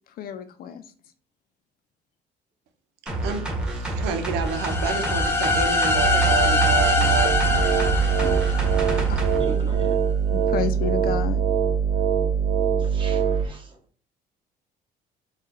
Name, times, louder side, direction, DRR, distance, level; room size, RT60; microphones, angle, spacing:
voice 1, 0.2-0.8 10.3-11.4, left 8 dB, 60° left, 0.6 m, -30 dB
sound 1, 3.1-9.4 9.8-9.9, right 1 dB, 5° right, 1.1 m, -28 dB
voice 2, 3.2-7.2 7.5-7.7, right 5 dB, 90° right, 0.7 m, -32 dB
sound 2, 4.4-9.3, left 2 dB, 15° left, 0.7 m, -24 dB
sound 3, 5.9-13.5, right 7 dB, 55° right, 0.6 m, -23 dB
voice 3, 7.9-8.5 9.3-10.1 11.9-12.0 12.8-13.8, right 2 dB, 30° right, 1.3 m, -38 dB
4.2 x 2.3 x 3.8 m
cardioid pair, 110°, 17 cm